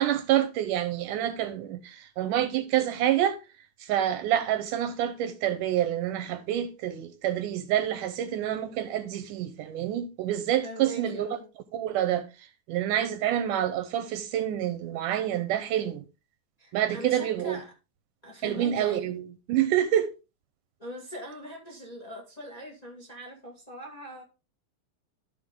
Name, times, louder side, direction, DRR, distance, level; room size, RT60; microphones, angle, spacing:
voice 1, 0.0-3.4 3.8-11.3 11.7-12.3 12.7-16.0 16.7-17.6 18.4-20.1, right 11 dB, 75° right, 2.1 m, -27 dB
voice 2, 10.6-11.5 16.6-17.7 18.2-19.1 20.8-24.2, equal, 15° left, 1.5 m, -42 dB
13.0 x 4.6 x 3.7 m
omnidirectional pair, 3.9 m